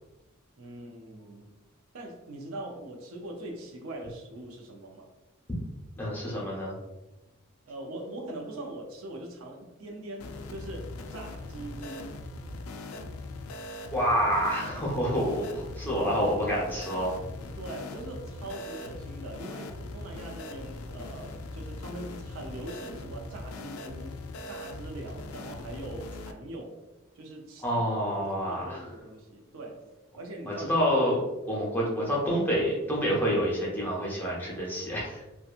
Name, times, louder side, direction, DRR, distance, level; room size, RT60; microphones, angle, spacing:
voice 1, 0.6-1.5 1.9-5.1 7.7-12.2 17.6-24.2 24.5-26.8 27.2-27.8 28.2-29.9 30.2-30.7, right 1 dB, 85° right, 1 dB, 0.5 m, -42 dB
voice 2, 6.0-6.8 13.9-17.2 27.6-28.8 30.5-31.2 31.5-35.2, equal, 10° left, -5 dB, 0.7 m, -28 dB
sound 1, 10.2-26.3, left 2 dB, 90° left, 0.3 m, -40 dB
2.8 x 2.2 x 2.4 m, 1.0 s
head